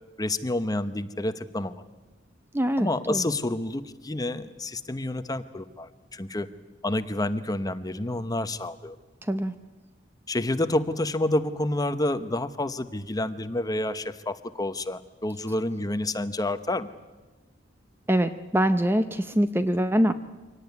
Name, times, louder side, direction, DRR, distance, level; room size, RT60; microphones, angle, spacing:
voice 1, 0.2-1.8 2.8-6.5 6.8-9.0 10.3-16.9, left 1 dB, 20° left, 10 dB, 0.9 m, -29 dB
voice 2, 2.5-3.3 9.2-9.5 18.1-20.1, equal, 10° right, 11 dB, 0.7 m, -24 dB
24.0 x 18.0 x 9.5 m, 1.2 s
head